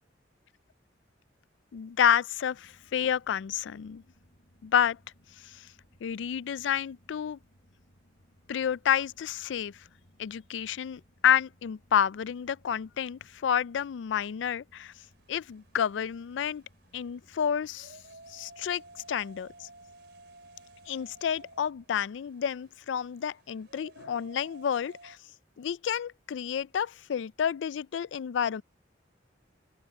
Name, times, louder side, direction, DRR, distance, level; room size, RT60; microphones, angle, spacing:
voice 1, 1.7-4.0 4.6-5.0 5.4-5.7 6.0-7.4 8.5-9.7 10.2-14.9 15.3-16.6 16.9-17.9 18.3-18.8 19.1-19.7 20.9-25.2 25.6-28.6, left 8 dB, 90° left, 0.4 m, -29 dB
sound 1, 2.6-21.9, equal, 60° left, 3.8 m, -64 dB
sound 2, 14.7-25.2, right 2 dB, 65° right, 4.8 m, -55 dB
open air
head